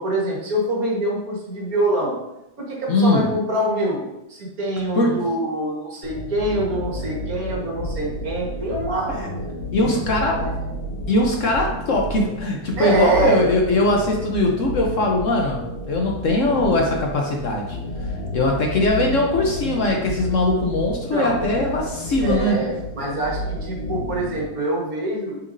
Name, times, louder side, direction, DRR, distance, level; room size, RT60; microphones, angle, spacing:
voice 1, 0.0-2.1 2.6-9.2 9.8-10.5 12.8-13.4 21.1-21.7 22.2-25.4, right 1 dB, 50° right, -2 dB, 1.8 m, -25 dB
voice 2, 2.9-3.3 4.9-5.3 9.1-9.3 9.7-10.5 11.1-17.8 18.3-22.6, left 2 dB, 60° left, 0 dB, 0.8 m, -21 dB
sound 1, 6.0-24.5, left 1 dB, 35° left, 1.3 m, -31 dB
6.7 x 5.9 x 2.6 m, 0.91 s
omnidirectional pair, 2.1 m